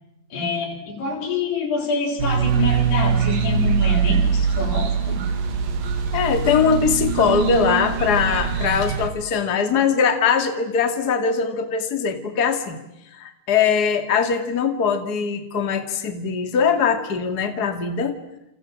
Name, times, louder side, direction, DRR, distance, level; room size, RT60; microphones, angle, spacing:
voice 1, 0.3-5.2, left 3 dB, 65° left, 0 dB, 7.1 m, -26 dB
sound 1, 2.2-9.1, right 6 dB, 55° right, 3.5 m, -22 dB
voice 2, 6.1-12.8 13.1-18.2, left 6 dB, 30° left, 7 dB, 2.0 m, -21 dB
28.5 x 27.5 x 7.5 m, 0.87 s
omnidirectional pair, 4.9 m